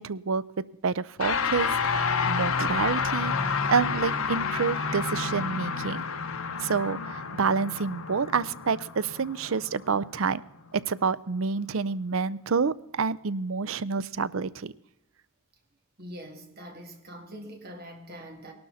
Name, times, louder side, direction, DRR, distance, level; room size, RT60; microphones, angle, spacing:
voice 1, 0.0-6.0 6.6-10.4 10.7-14.7, right 5 dB, 65° right, 0.6 m, -28 dB
sound 1, 1.2-10.7, left 5 dB, 70° left, 1.1 m, -29 dB
voice 2, 16.0-18.5, equal, 45° right, 2.6 m, -43 dB
18.5 x 12.0 x 4.1 m
head